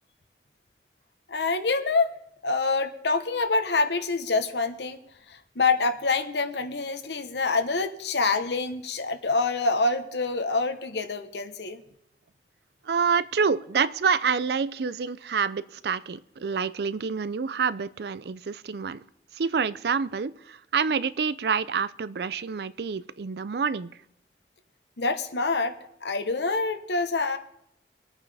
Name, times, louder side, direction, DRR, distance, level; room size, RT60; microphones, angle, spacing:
voice 1, 1.3-2.1 2.4-5.0 5.3-11.8 25.0-27.4, left 3 dB, 80° left, 1.0 m, -26 dB
voice 2, 12.9-19.0 19.3-23.9, right 5 dB, 70° right, 0.4 m, -27 dB
23.0 x 8.9 x 3.4 m
head